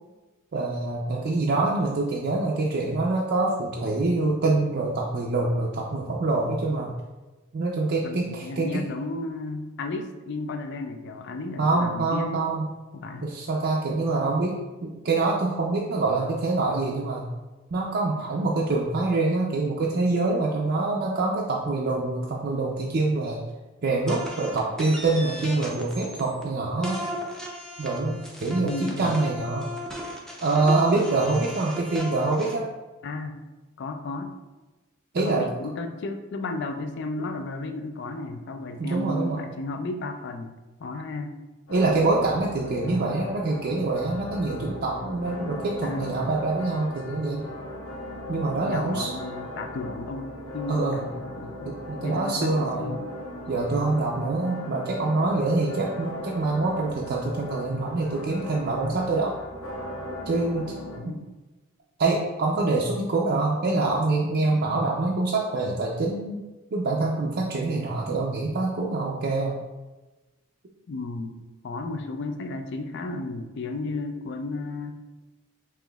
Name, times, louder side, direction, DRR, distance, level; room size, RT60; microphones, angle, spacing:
voice 1, 0.5-6.9 7.5-8.8 11.6-12.7 13.2-17.2 17.7-23.4 23.8-27.0 27.8-29.7 30.4-32.7 35.1-35.5 38.8-39.4 41.7-47.4 48.3-49.1 50.7-51.0 51.6-52.8 53.5-59.3 60.3-60.7 61.0-61.1 62.0-66.4 66.7-69.6, right 3 dB, 50° right, -2 dB, 0.4 m, -25 dB
voice 2, 8.0-12.5 12.9-13.3 28.6-29.2 33.0-33.4 33.8-34.4 35.2-41.4 45.8-46.2 48.7-51.8 52.0-53.1 60.9-61.3 70.9-75.0, left 2 dB, 55° left, 6 dB, 0.4 m, -34 dB
sound 1, 24.1-26.4 26.8-32.5, left 1 dB, 5° left, 0.5 m, -36 dB
sound 2, 41.7-61.0, left 1 dB, 90° left, 0.8 m, -37 dB
5.6 x 3.0 x 2.3 m, 1.1 s
head